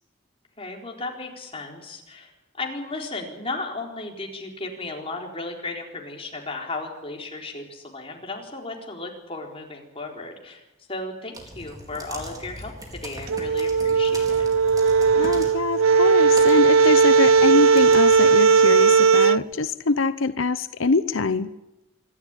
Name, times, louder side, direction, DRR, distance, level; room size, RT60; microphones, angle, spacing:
voice 1, 0.6-2.3 2.6-10.6 10.9-14.5, left 3 dB, 30° left, 1 dB, 4.2 m, -35 dB
sound 1, 11.3-18.2, right 1 dB, 20° right, 3.9 m, -41 dB
sound 2, 13.3-19.4, right 5 dB, 90° right, 0.7 m, -17 dB
voice 2, 15.2-21.5, left 3 dB, 75° left, 14 dB, 0.8 m, -24 dB
26.0 x 12.5 x 9.9 m, 0.95 s
head